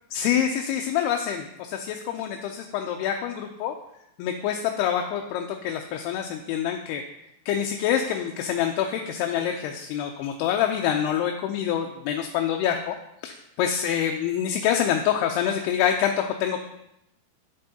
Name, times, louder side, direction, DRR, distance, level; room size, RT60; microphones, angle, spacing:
voice 1, 0.1-3.7 4.2-7.0 7.5-13.0 13.2-16.6, left 9 dB, 85° left, 3 dB, 2.6 m, -26 dB
10.5 x 7.6 x 2.8 m, 0.82 s
omnidirectional pair, 4.7 m